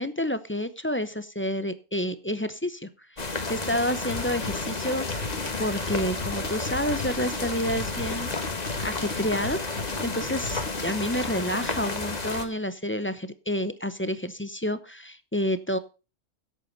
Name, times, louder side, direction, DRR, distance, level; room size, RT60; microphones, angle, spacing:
voice 1, 0.0-2.9 3.2-8.3 8.8-9.6 10.0-15.8, equal, 15° left, 13 dB, 0.6 m, -29 dB
sound 1, 3.2-12.4, left 3 dB, 35° left, 1.5 m, -32 dB
sound 2, 4.1-11.4, left 3 dB, 55° left, 2.2 m, -38 dB
11.0 x 8.3 x 5.3 m, 0.32 s
omnidirectional pair, 1.3 m